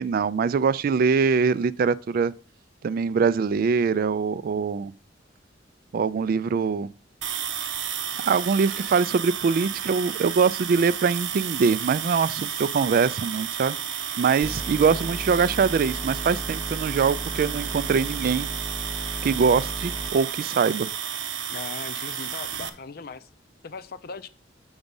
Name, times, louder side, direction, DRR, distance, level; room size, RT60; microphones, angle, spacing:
voice 1, 0.0-2.3 2.8-4.9 5.9-6.9 8.2-13.8 14.2-18.5 19.2-20.9, right 5 dB, 50° right, 0.3 m, -23 dB
sound 1, 7.2-22.7, right 9 dB, 85° right, 0.8 m, -32 dB
sound 2, 14.4-20.1, equal, 5° right, 0.6 m, -36 dB
voice 2, 21.5-23.3 23.6-24.3, left 5 dB, 55° left, 0.5 m, -38 dB
7.1 x 5.1 x 5.3 m
head